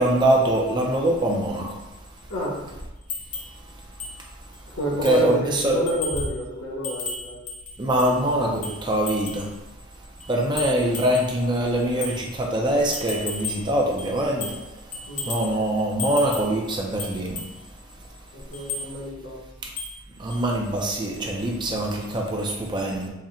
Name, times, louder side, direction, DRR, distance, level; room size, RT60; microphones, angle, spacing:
voice 1, 0.0-1.8 5.0-5.8 7.8-9.5 10.3-14.6 15.2-17.4 20.2-23.1, right 1 dB, 20° right, -1 dB, 0.4 m, -23 dB
sound 1, 3.1-3.6 4.0-4.2 4.5-4.6 5.0-5.3 5.9-6.4 6.8-8.2 8.6-9.5 10.2-11.3 12.0-12.2 12.9-13.7 14.0-14.7 14.9-15.5 16.0-16.6 17.0-17.5 18.5-18.9 19.8-20.0 20.3-20.4, left 3 dB, 35° left, 0.6 m, -34 dB
voice 2, 4.7-7.4 15.1-15.3 18.3-19.4, equal, 75° left, -4 dB, 1.1 m, -29 dB
4.1 x 2.1 x 3.6 m, 0.99 s
head